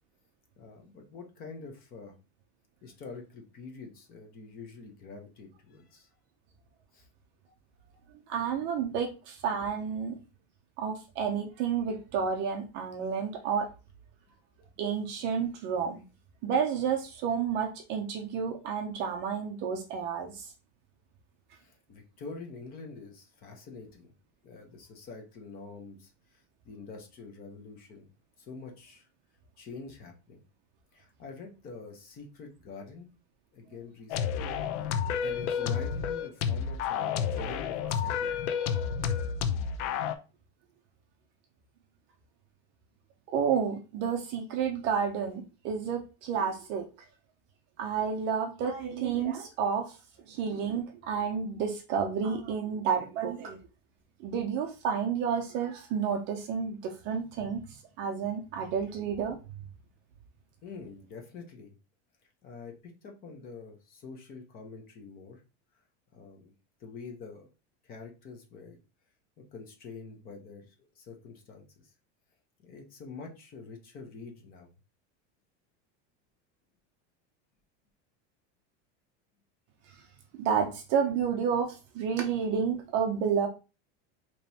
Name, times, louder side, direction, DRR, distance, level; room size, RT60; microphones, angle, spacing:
voice 1, 0.6-2.1 2.8-6.1 6.9-7.1 21.6-24.1 24.4-28.1 28.4-29.1 29.6-30.4 30.9-33.1 33.5-34.6 34.9-38.3 60.6-61.7 62.4-62.8 63.0-65.4 66.1-66.5 66.8-67.5 67.8-68.8 69.4-71.6 72.6-74.7, left 4 dB, 25° left, 3 dB, 0.8 m, -46 dB
voice 2, 8.3-10.2 10.8-13.7 14.8-16.0 16.4-20.5 43.3-46.9 47.8-50.0 50.3-53.6 54.2-59.4 80.3-83.5, right 7 dB, 35° right, 4 dB, 0.5 m, -30 dB
sound 1, 34.1-40.2, left 7 dB, 85° left, 0.7 m, -30 dB
5.0 x 3.0 x 2.8 m, 0.31 s
supercardioid pair, 175°, 34 cm